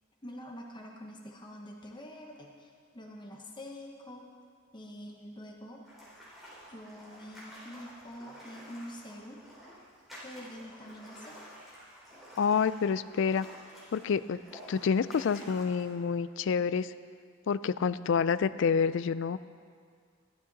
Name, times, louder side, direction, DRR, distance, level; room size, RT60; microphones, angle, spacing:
voice 1, 0.2-4.2 4.7-5.8 6.7-9.4 10.2-11.4, equal, 25° left, 0 dB, 1.0 m, -46 dB
sound 1, 5.8-15.9, equal, ahead, 4.1 m, -51 dB
voice 2, 12.4-13.5 13.9-14.4 14.7-16.9 17.5-19.4, left 6 dB, 65° left, 16 dB, 0.4 m, -28 dB
15.0 x 12.0 x 4.0 m, 2.1 s
head